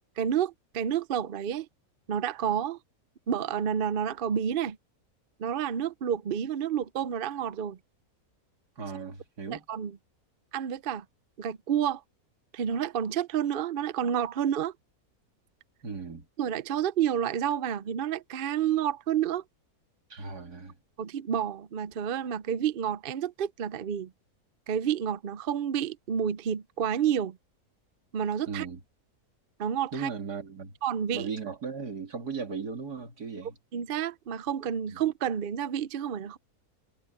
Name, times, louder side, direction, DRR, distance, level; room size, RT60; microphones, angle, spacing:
voice 1, 0.2-1.7 2.1-2.8 3.3-4.8 5.4-7.8 9.5-10.0 10.5-11.0 11.4-12.0 12.5-14.7 16.4-19.4 21.0-24.1 24.7-27.4 28.1-28.7 29.6-30.1 30.8-31.3 33.7-36.4, right 9 dB, 50° right, 0.6 m, -29 dB
voice 2, 8.8-9.6 15.8-16.3 20.1-20.7 28.5-28.8 29.9-30.7 31.1-33.6 34.9-35.0, right 5 dB, 85° right, 3.3 m, -37 dB
omnidirectional pair, 1.6 m